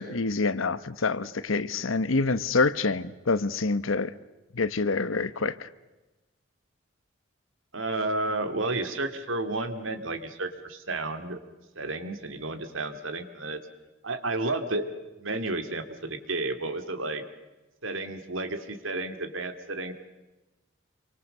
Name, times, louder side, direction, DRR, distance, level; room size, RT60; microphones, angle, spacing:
voice 1, 0.0-4.1 4.5-5.7, left 3 dB, 80° left, 15 dB, 1.0 m, -26 dB
voice 2, 7.7-11.4 11.8-13.6 14.0-14.9 15.2-17.2 17.8-19.9, right 2 dB, 75° right, 9 dB, 2.3 m, -31 dB
27.5 x 24.5 x 6.7 m, 1.1 s
head